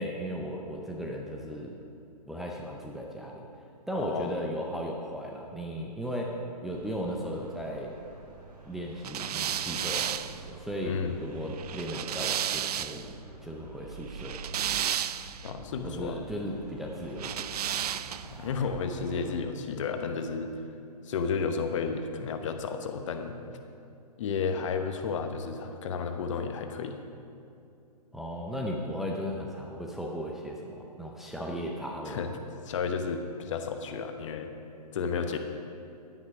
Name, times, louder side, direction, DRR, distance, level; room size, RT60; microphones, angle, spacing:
voice 1, 0.0-1.8 2.3-3.4 3.9-7.9 8.6-13.1 13.4-14.4 15.8-17.6 28.1-32.3, equal, ahead, -2 dB, 0.5 m, -36 dB
voice 2, 3.9-4.4 10.8-11.2 15.4-16.2 18.3-20.5 21.0-23.4 24.2-27.0 32.0-32.3 32.6-34.5 34.9-35.4, left 5 dB, 50° left, 6 dB, 1.0 m, -32 dB
sound 1, 6.6-19.3, right 3 dB, 85° right, 2.7 m, -48 dB
sound 2, 9.0-13.1 14.1-15.5 17.2-18.4, right 10 dB, 65° right, 0.4 m, -33 dB
11.0 x 9.7 x 5.0 m, 2.6 s
hypercardioid pair, 140°, 21 cm